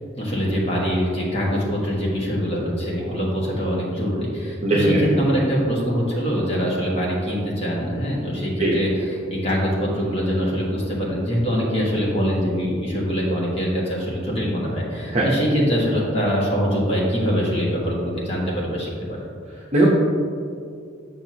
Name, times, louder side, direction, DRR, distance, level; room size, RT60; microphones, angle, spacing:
voice 1, 0.2-19.2, equal, 35° left, -4 dB, 1.5 m, -23 dB
voice 2, 4.6-5.0 8.6-8.7 15.1-15.3 19.7-19.9, right 1 dB, 35° right, -5 dB, 0.8 m, -18 dB
7.8 x 5.7 x 2.9 m, 2.3 s
head